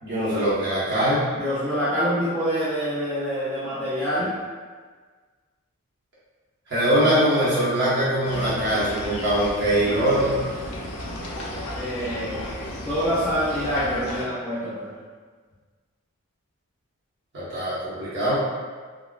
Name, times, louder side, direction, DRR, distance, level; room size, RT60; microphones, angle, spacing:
voice 1, 0.0-1.3 6.7-10.4 17.3-18.4, right 1 dB, 50° right, -10 dB, 1.0 m, -22 dB
voice 2, 1.4-4.3 11.7-12.4 12.9-14.9, equal, 5° left, -11 dB, 0.4 m, -26 dB
sound 1, 8.2-14.2, left 1 dB, 85° left, 0.5 m, -34 dB
3.6 x 2.2 x 2.3 m, 1.5 s
head